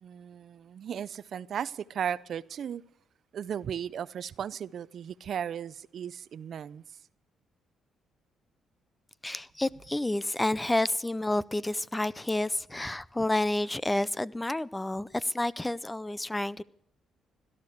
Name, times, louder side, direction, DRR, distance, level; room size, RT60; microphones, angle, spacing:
voice 1, 0.0-2.8 3.3-6.8, right 8 dB, 60° right, 0.6 m, -36 dB
voice 2, 9.2-16.6, left 1 dB, 10° left, 0.5 m, -29 dB
17.5 x 12.5 x 6.6 m
cardioid pair, 90°, 0 cm